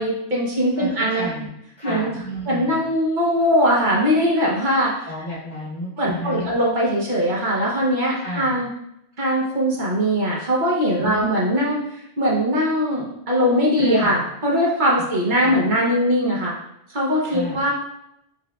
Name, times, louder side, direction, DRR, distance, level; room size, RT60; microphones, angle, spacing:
voice 1, 0.0-1.3 1.8-2.1 2.5-5.1 6.0-8.7 9.2-16.6 16.9-17.7, equal, 45° right, -4 dB, 0.8 m, -21 dB
voice 2, 0.8-1.5 1.8-2.8 5.0-6.6 8.1-8.6 11.0-11.3 13.8-14.2 15.4-15.7 17.2-17.6, left 1 dB, 70° left, -13 dB, 2.0 m, -31 dB
5.8 x 2.3 x 2.3 m, 0.80 s
omnidirectional pair, 1.2 m